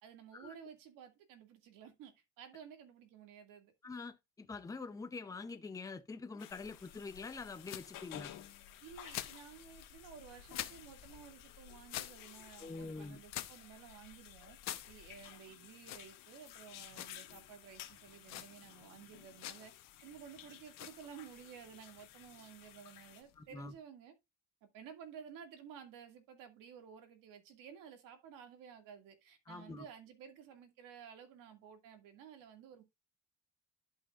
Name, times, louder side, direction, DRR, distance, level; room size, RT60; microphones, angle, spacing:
voice 1, 0.0-3.7 8.8-14.6 14.9-19.7 20.0-24.1 24.7-32.8, right 8 dB, 85° right, 2.2 m, -54 dB
voice 2, 3.8-8.3 12.6-13.2 23.4-23.7 29.5-29.8, left 4 dB, 10° left, 0.6 m, -45 dB
sound 1, 6.4-23.2, left 12 dB, 85° left, 1.5 m, -55 dB
sound 2, 6.5-23.8, left 12 dB, 55° left, 0.9 m, -50 dB
11.5 x 5.6 x 2.4 m
cardioid pair, 165°, 32 cm